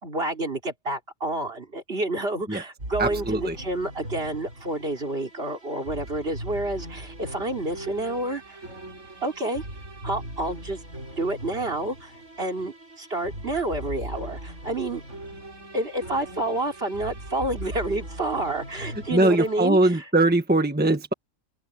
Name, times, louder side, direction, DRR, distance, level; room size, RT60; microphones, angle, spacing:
voice 1, 0.0-8.6 9.2-9.6 10.0-10.8 11.2-15.0 15.7-20.0, right 2 dB, 50° right, 3.7 m, -29 dB
sound 1, 2.8-19.7, right 1 dB, 80° right, 8.3 m, -39 dB
voice 2, 3.0-3.6 19.1-21.1, right 2 dB, 10° right, 1.4 m, -21 dB
open air
omnidirectional pair, 1.3 m